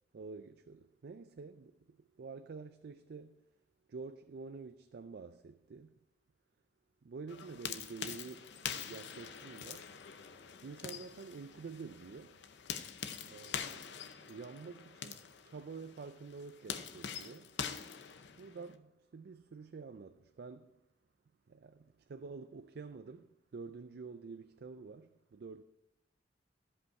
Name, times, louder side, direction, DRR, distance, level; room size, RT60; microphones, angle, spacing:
voice 1, 0.1-3.4 3.9-6.0 7.0-9.9 10.6-12.4 13.2-17.6 18.3-20.8 21.5-25.6, right 4 dB, 60° right, 0.4 m, -49 dB
sound 1, 7.3-18.7, left 7 dB, 70° left, 0.7 m, -45 dB
14.5 x 5.3 x 4.7 m
head